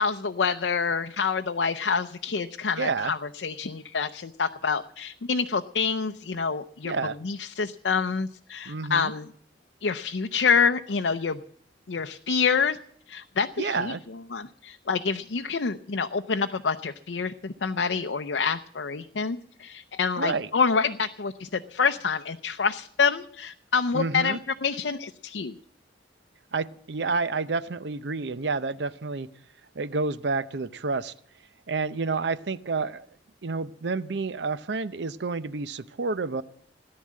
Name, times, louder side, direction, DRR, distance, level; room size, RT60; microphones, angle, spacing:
voice 1, 0.0-9.3 9.8-11.4 11.9-12.8 13.1-25.6, left 5 dB, 75° left, 7 dB, 0.6 m, -27 dB
voice 2, 2.8-3.1 6.8-7.2 8.7-9.1 13.6-14.0 20.2-20.5 23.9-24.4 26.5-29.3 29.8-31.1 31.7-33.1 33.4-36.4, right 4 dB, 70° right, 16 dB, 0.7 m, -29 dB
17.5 x 10.5 x 7.5 m, 0.64 s
head